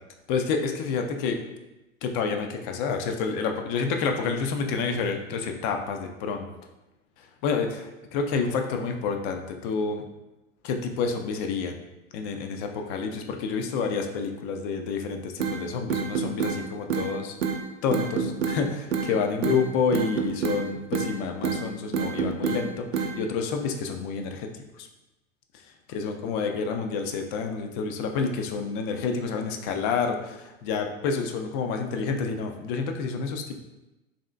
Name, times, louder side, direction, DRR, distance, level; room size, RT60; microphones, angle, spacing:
voice 1, 0.3-1.4 2.0-6.5 7.4-10.0 10.6-11.8 12.1-17.3 17.8-24.5 24.8-24.9 25.9-33.6, left 5 dB, 40° left, 4 dB, 0.5 m, -29 dB
sound 1, 15.4-15.6 15.9-16.6 16.9-17.1 17.4-17.6 17.9-18.6 18.9-19.1 19.4-19.6 19.9-20.6 20.9-21.1 21.4-21.6 21.9-22.6 22.9-23.1, right 6 dB, 75° right, 0.6 m, -26 dB
3.4 x 2.7 x 3.2 m, 0.98 s
figure-of-eight pair, 85°, 39 cm